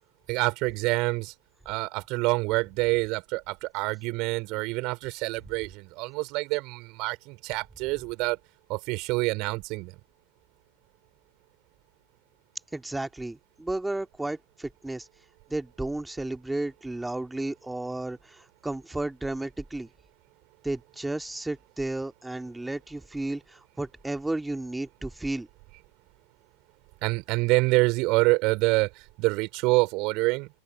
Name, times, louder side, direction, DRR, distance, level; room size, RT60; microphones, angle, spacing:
voice 1, 0.3-1.3 1.6-8.4 8.7-9.9 27.0-30.5, right 25 dB, 40° right, 5.0 m, -26 dB
voice 2, 12.7-15.1 15.5-19.9 20.6-25.5, right 2 dB, 5° right, 2.3 m, -33 dB
open air
figure-of-eight pair, 90°, 0 cm